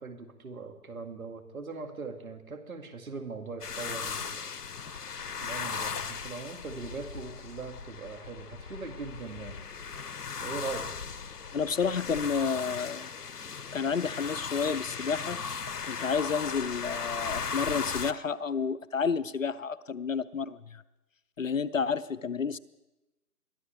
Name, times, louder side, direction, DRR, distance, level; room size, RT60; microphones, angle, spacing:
voice 1, 0.0-4.5 5.4-9.6 10.4-10.9 11.3-11.4, right 4 dB, 65° right, 6 dB, 2.3 m, -40 dB
sound 1, 3.6-18.1, left 6 dB, 80° left, 0.9 m, -37 dB
voice 2, 11.5-13.1 13.7-15.4 15.8-20.8 21.4-22.6, left 6 dB, 60° left, 15 dB, 0.6 m, -30 dB
22.5 x 13.5 x 3.4 m, 1.0 s
figure-of-eight pair, 165°, 46 cm